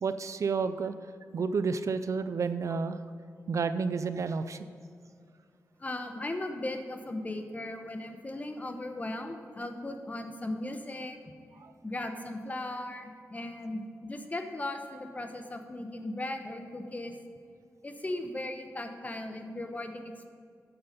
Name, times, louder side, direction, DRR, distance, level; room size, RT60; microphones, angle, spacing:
voice 1, 0.0-0.9 1.3-3.0 3.5-4.7 11.6-11.7, right 5 dB, 60° right, 11 dB, 0.4 m, -30 dB
voice 2, 5.8-11.2 11.8-17.2 17.8-20.3, left 1 dB, 25° left, 6 dB, 0.9 m, -37 dB
9.5 x 7.9 x 5.2 m, 2.3 s
wide cardioid pair, 95°, 6 cm